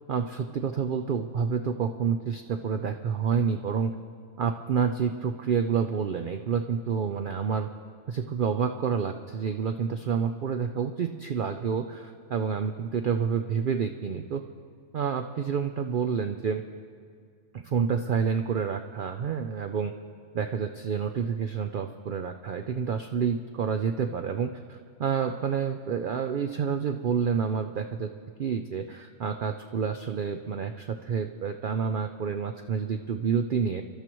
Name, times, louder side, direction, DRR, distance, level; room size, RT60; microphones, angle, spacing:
voice 1, 0.1-3.9 4.4-7.7 8.1-14.4 14.9-16.6 17.5-19.9 20.3-28.1 28.4-33.8, right 6 dB, 75° right, 7 dB, 0.4 m, -28 dB
26.5 x 12.5 x 3.0 m, 2.2 s
omnidirectional pair, 1.5 m